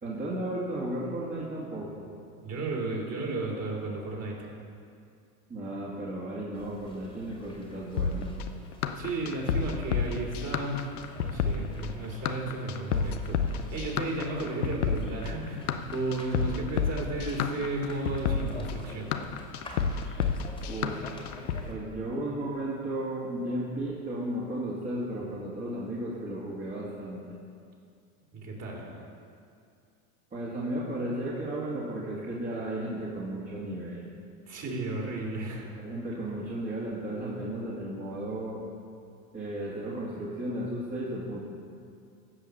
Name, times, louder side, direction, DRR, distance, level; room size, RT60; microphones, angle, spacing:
voice 1, 0.0-2.1 5.5-8.3 20.7-21.3 21.7-27.4 30.3-34.1 35.8-38.6 39.3-41.4, right 1 dB, 20° right, -7 dB, 2.1 m, -34 dB
voice 2, 2.4-4.5 8.9-10.8 11.1-19.2 28.3-29.0 34.5-35.7, right 2 dB, 35° right, -1 dB, 3.1 m, -34 dB
sound 1, 6.5-21.7, left 1 dB, 10° left, 2.2 m, -49 dB
sound 2, 8.0-21.6, left 6 dB, 85° left, 0.9 m, -30 dB
15.0 x 5.5 x 6.7 m, 2.4 s
hypercardioid pair, 100°, 44 cm